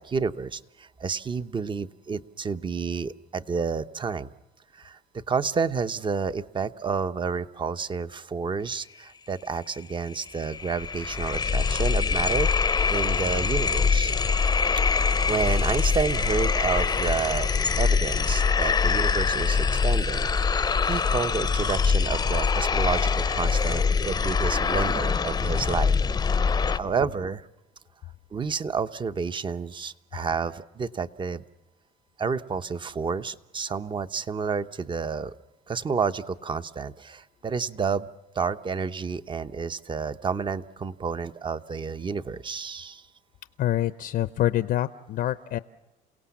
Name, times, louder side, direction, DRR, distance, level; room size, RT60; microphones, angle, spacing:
voice 1, 0.0-4.3 4.7-12.5 12.9-14.1 14.9-20.3 20.8-26.0 26.4-27.5 28.3-31.4 32.2-35.3 35.7-38.1 38.3-43.1, right 5 dB, 30° right, 12 dB, 0.9 m, -30 dB
sound 1, 9.8-9.9 10.1-26.8, left 5 dB, 25° left, 0.7 m, -24 dB
voice 2, 43.6-45.6, left 13 dB, 60° left, 14 dB, 0.7 m, -26 dB
28.5 x 17.5 x 7.3 m, 1.0 s
cardioid pair, 110°, 17 cm